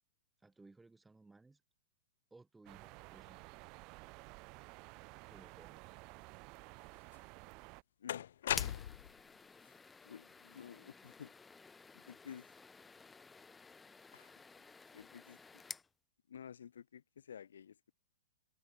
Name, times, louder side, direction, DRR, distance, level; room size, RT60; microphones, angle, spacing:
voice 1, 0.4-1.6 2.3-3.5 5.3-5.9, right 3 dB, 5° right, 5.0 m, -61 dB
sound 1, 2.7-7.8, right 27 dB, 35° right, 1.2 m, -54 dB
sound 2, 7.1-7.2 8.1-9.2, left 11 dB, 70° left, 0.5 m, -37 dB
sound 3, 8.5-15.9, left 4 dB, 10° left, 2.5 m, -52 dB
voice 2, 10.0-11.3 11.9-12.5 14.1-14.3 14.9-15.4 16.3-17.8, left 8 dB, 85° left, 0.9 m, -52 dB
hypercardioid pair, 150°, 0 cm